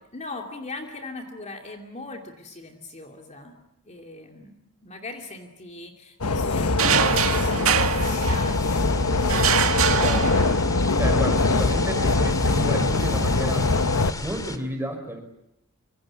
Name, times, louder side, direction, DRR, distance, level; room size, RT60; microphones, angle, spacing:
voice 1, 0.1-9.1, left 2 dB, 30° left, 3 dB, 2.6 m, -39 dB
sound 1, 6.2-14.1, left 3 dB, 90° left, 1.2 m, -22 dB
sound 2, 6.8-8.8 9.3-10.9, right 7 dB, 70° right, 2.1 m, -24 dB
sound 3, 8.0-14.6, left 2 dB, 15° left, 2.2 m, -36 dB
voice 2, 9.9-10.5 11.0-13.8 14.2-15.2, equal, 10° right, 5 dB, 5.6 m, -31 dB
26.0 x 25.5 x 8.8 m, 0.81 s
head